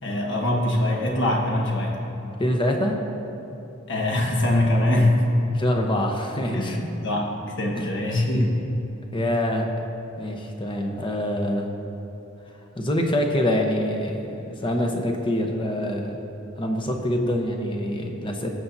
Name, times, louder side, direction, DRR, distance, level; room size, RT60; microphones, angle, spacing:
voice 1, 0.0-2.0 3.9-5.3 6.5-8.6, left 1 dB, 60° left, -1 dB, 1.5 m, -23 dB
voice 2, 2.4-3.0 5.5-6.8 7.8-7.9 9.1-9.7 10.2-11.7 12.8-16.2 16.6-18.5, left 1 dB, 25° left, 2 dB, 0.9 m, -25 dB
20.0 x 7.0 x 2.7 m, 2.9 s
head